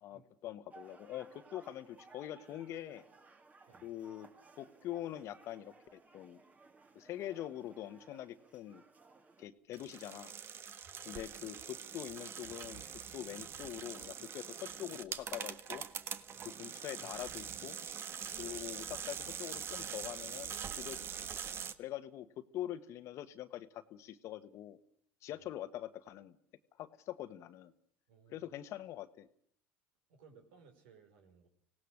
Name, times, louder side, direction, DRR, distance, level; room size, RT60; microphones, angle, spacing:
voice 1, 0.0-3.1 3.8-4.3 4.6-6.4 6.9-8.8 9.4-10.3 11.0-12.8 13.1-15.8 16.4-17.8 18.4-21.1 21.8-24.8 25.2-26.3 26.8-27.7 28.3-29.3, left 12 dB, 55° left, 12 dB, 1.4 m, -44 dB
sound 1, 0.7-9.5, right 3 dB, 25° right, 2.3 m, -60 dB
sound 2, 9.7-21.7, right 7 dB, 45° right, 1.4 m, -44 dB
voice 2, 28.1-28.5 30.1-31.5, right 5 dB, 80° right, 5 dB, 4.9 m, -62 dB
25.0 x 17.5 x 6.6 m, 0.67 s
supercardioid pair, 90°, 6 cm